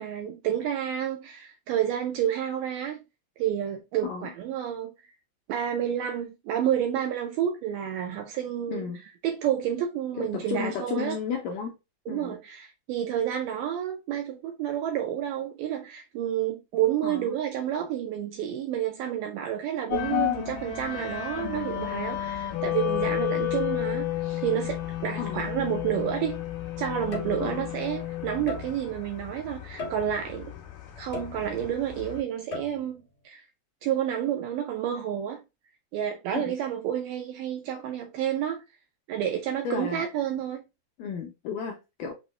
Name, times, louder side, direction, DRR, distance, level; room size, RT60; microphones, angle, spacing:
voice 1, 0.0-3.0 3.4-4.9 5.5-8.9 9.2-11.2 12.1-26.4 26.8-30.5 31.0-33.4 33.8-35.4 35.9-38.6 39.1-40.6, right 10 dB, 85° right, 1.8 m, -30 dB
voice 2, 8.7-9.0 10.2-11.7 12.1-12.4 17.0-17.4 25.2-25.5 27.4-27.7 36.3-36.5 39.6-40.0 41.0-42.1, left 6 dB, 85° left, 1.9 m, -33 dB
sound 1, 19.9-32.2, left 13 dB, 65° left, 2.4 m, -32 dB
sound 2, 27.1-27.7 28.5-29.0 29.8-30.4 31.1-31.8 32.5-33.0, left 3 dB, 50° left, 1.7 m, -38 dB
6.0 x 2.1 x 3.2 m
omnidirectional pair, 4.4 m